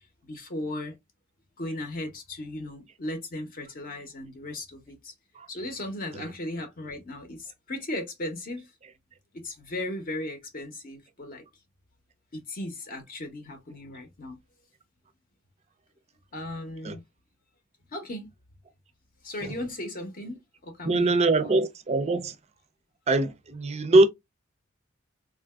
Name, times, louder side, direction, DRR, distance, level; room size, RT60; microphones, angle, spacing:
voice 1, 0.2-0.9 1.6-5.1 5.5-8.7 9.3-11.4 12.3-14.4 16.3-17.0 17.9-18.3 19.2-21.6, left 1 dB, 45° left, 0.7 m, -36 dB
voice 2, 20.8-22.3 23.1-24.1, right 2 dB, 35° right, 0.4 m, -22 dB
3.6 x 2.5 x 2.2 m
head